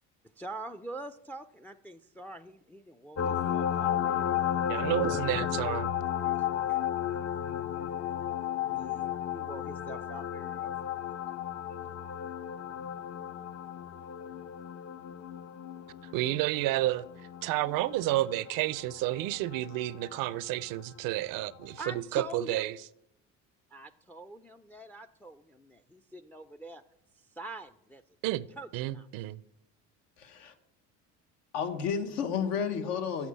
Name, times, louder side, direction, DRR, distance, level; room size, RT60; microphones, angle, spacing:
voice 1, 0.4-4.7 5.0-5.5 6.2-7.3 8.6-10.8 21.8-22.6 23.7-26.8 27.4-28.0 28.6-29.1, right 1 dB, 5° left, 0.4 m, -45 dB
sound 1, 3.2-20.4 21.9-22.0, left 10 dB, 45° left, 0.6 m, -34 dB
voice 2, 4.7-5.9 16.1-17.0 17.4-22.8 28.2-28.5 28.7-29.4, right 16 dB, 70° right, 0.5 m, -30 dB
voice 3, 30.2-30.5 31.5-33.3, left 7 dB, 80° left, 1.2 m, -31 dB
7.2 x 6.0 x 7.3 m
supercardioid pair, 85°, 35 cm